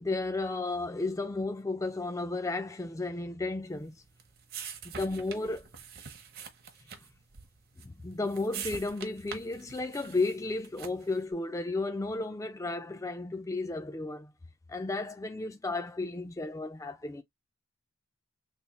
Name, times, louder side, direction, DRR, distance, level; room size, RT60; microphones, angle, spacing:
voice 1, 0.0-4.0 4.9-5.7 7.8-14.3 14.7-17.2, left 3 dB, 15° left, 0.3 m, -33 dB
sound 1, 3.7-11.2, right 7 dB, 45° right, 0.7 m, -45 dB
3.4 x 2.2 x 4.0 m
head